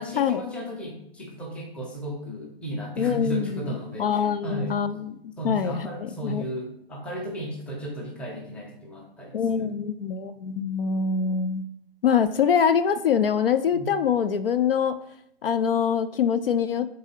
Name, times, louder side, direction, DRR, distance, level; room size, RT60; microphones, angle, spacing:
voice 1, 0.0-4.8 5.4-9.7 13.7-13.9, right 1 dB, 5° left, 0 dB, 0.7 m, -35 dB
voice 2, 3.0-5.1 5.4-6.4 9.3-11.6 12.0-15.0 15.4-16.9, left 7 dB, 65° left, 12 dB, 0.5 m, -24 dB
4.7 x 3.7 x 5.6 m, 0.78 s
figure-of-eight pair, 135°, 31 cm